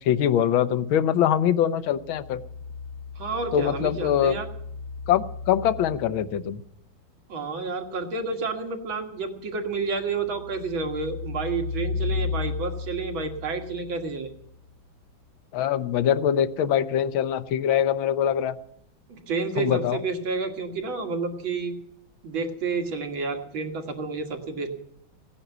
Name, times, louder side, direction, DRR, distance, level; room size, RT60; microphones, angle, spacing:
voice 1, 0.0-2.4 3.5-4.4 5.1-6.6 15.5-18.6 19.6-20.0, left 9 dB, 90° left, 14 dB, 1.6 m, -23 dB
sound 1, 1.9-6.5 9.9-14.5 16.6-16.7, left 5 dB, 65° left, 2.7 m, -35 dB
voice 2, 3.2-4.5 7.3-14.3 19.1-21.8 22.2-24.7, right 4 dB, 90° right, 4 dB, 2.6 m, -30 dB
17.0 x 10.0 x 7.9 m, 0.73 s
omnidirectional pair, 2.1 m